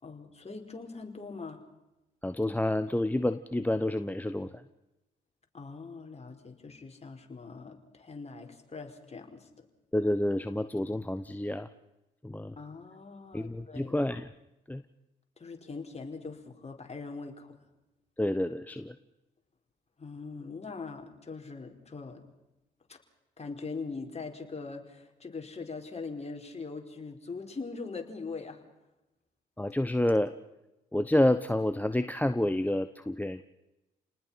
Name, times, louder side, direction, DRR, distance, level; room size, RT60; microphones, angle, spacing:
voice 1, 0.0-1.6 5.5-9.5 12.6-14.0 15.4-17.6 20.0-22.2 22.9-23.0 23.4-28.6, left 4 dB, 30° left, 3 dB, 4.8 m, -42 dB
voice 2, 2.2-4.5 9.9-11.7 12.2-12.5 13.3-14.2 14.7-14.8 18.2-18.9 29.6-30.3 30.9-33.4, left 1 dB, 5° left, 11 dB, 1.0 m, -28 dB
30.0 x 19.5 x 5.8 m, 0.96 s
hypercardioid pair, 50°, 21 cm